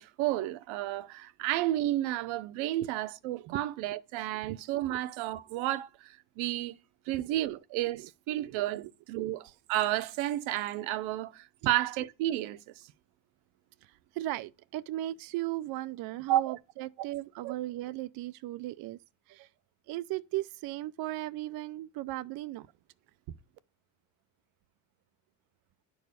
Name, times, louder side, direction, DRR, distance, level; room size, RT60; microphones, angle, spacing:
voice 1, 0.0-6.7 7.1-12.8 16.3-16.6 17.4-17.5 23.3-23.4, right 14 dB, 70° right, 0.9 m, -32 dB
voice 2, 8.4-8.9 9.2-9.4 11.6-11.7 13.8-19.0 19.3-19.5 19.9-22.7, right 16 dB, 50° right, 0.5 m, -37 dB
10.5 x 4.7 x 6.4 m
cardioid pair, 125°, 49 cm